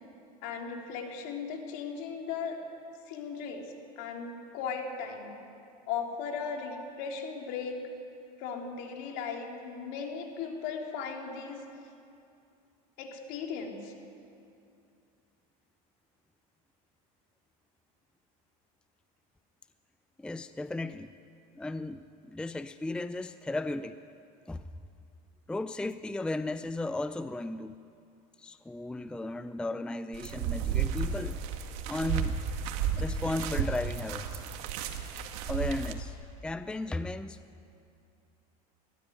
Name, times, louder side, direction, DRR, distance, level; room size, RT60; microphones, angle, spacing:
voice 1, 0.4-2.6 3.1-5.4 5.9-7.8 8.4-11.6 13.0-13.9, left 6 dB, 65° left, 2 dB, 3.5 m, -37 dB
voice 2, 20.2-21.1 21.5-24.0 24.5-24.7 25.5-27.8 28.4-31.4 31.9-32.4 33.0-34.4 35.5-36.2 36.4-37.4, left 2 dB, 5° left, 12 dB, 0.5 m, -35 dB
sound 1, 30.1-35.9, right 7 dB, 70° right, 2.0 m, -33 dB
20.5 x 13.5 x 9.5 m, 2.5 s
supercardioid pair, 115°, 19 cm